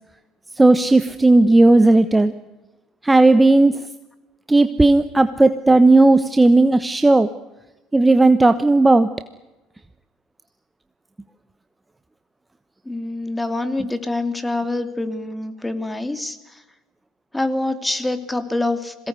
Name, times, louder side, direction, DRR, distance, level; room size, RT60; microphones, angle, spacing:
voice 1, 0.6-2.3 3.0-3.9 4.5-7.3 7.9-9.1, right 2 dB, 10° right, 11 dB, 1.0 m, -14 dB
voice 2, 12.8-16.6 17.3-19.1, left 2 dB, 10° left, 9 dB, 2.7 m, -25 dB
22.0 x 18.0 x 9.6 m, 1.1 s
hypercardioid pair, 80°, 0 cm